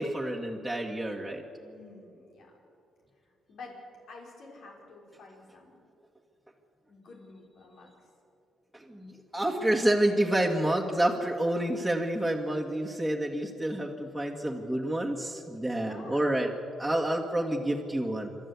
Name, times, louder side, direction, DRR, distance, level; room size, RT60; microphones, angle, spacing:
voice 1, 0.0-1.4 8.7-16.5 16.8-18.3, right 1 dB, ahead, -2 dB, 2.0 m, -28 dB
voice 2, 1.6-2.5 3.5-3.8 4.1-5.8 6.9-8.1 15.6-16.3, left 3 dB, 70° left, -1 dB, 5.3 m, -49 dB
27.0 x 12.5 x 8.5 m, 2.7 s
cardioid pair, 90°, 0 cm